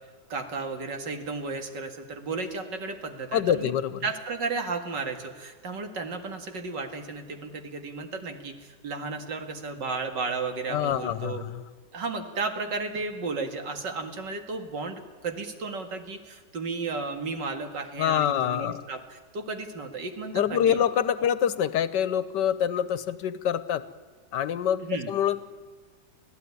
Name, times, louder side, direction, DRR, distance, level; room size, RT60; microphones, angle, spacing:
voice 1, 0.3-3.7 4.0-11.4 11.9-20.8 21.2-21.3 24.8-25.1, right 4 dB, 85° right, 6 dB, 2.6 m, -34 dB
voice 2, 3.3-4.0 10.7-11.6 18.0-18.8 20.3-23.8 24.3-25.4, left 9 dB, 85° left, 15 dB, 1.6 m, -26 dB
25.5 x 16.0 x 9.6 m, 1.5 s
omnidirectional pair, 1.8 m